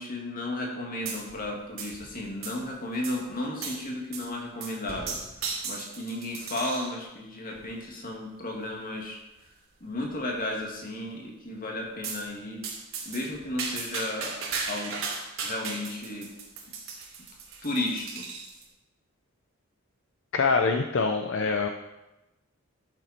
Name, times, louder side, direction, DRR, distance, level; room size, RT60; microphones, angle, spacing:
voice 1, 0.0-9.2 9.8-12.6 13.0-14.4 14.7-14.9 15.4-16.3 17.6-18.3, left 1 dB, 45° left, -1 dB, 2.4 m, -34 dB
sound 1, 1.1-1.5 1.8-2.7 3.0-3.2 3.6-3.8 4.1-4.3 4.6-7.0 7.6-7.9 8.6-8.7 9.0-9.1 9.4-9.5 9.9-10.4 12.0-12.2 12.6-18.6, right 4 dB, 90° right, 2.9 m, -36 dB
voice 2, 20.3-21.7, left 4 dB, 65° left, 5 dB, 0.6 m, -24 dB
12.0 x 7.3 x 4.4 m, 0.98 s
head